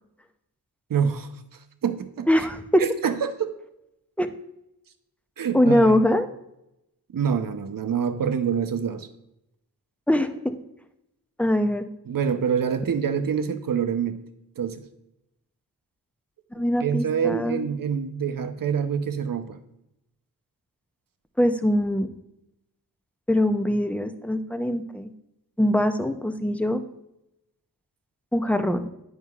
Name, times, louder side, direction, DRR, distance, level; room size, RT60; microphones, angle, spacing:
voice 1, 0.9-1.3 1.8-2.5 2.8-3.5 5.4-6.0 7.1-9.1 12.1-14.2 14.6-14.8 16.6-19.6, right 7 dB, 55° right, 9 dB, 0.7 m, -26 dB
voice 2, 2.3-2.8 4.2-4.3 5.5-6.3 10.1-10.5 11.4-11.9 16.5-17.7 21.4-22.1 23.3-25.1 25.6-26.8 28.3-28.9, left 1 dB, 5° left, 8 dB, 0.5 m, -22 dB
9.1 x 5.6 x 2.4 m, 0.84 s
cardioid pair, 50°, 40 cm